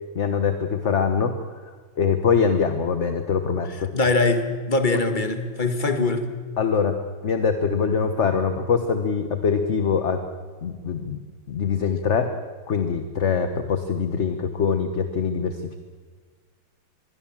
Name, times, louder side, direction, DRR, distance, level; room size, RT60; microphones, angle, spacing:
voice 1, 0.1-1.4 1.6-3.9 4.9-5.0 6.6-7.0 7.2-10.2 10.6-11.2 11.5-12.3 12.7-15.8, left 6 dB, 40° left, 8 dB, 1.1 m, -23 dB
voice 2, 3.9-6.3, left 3 dB, 25° left, 7 dB, 1.7 m, -22 dB
25.0 x 21.5 x 7.3 m, 1.5 s
omnidirectional pair, 2.3 m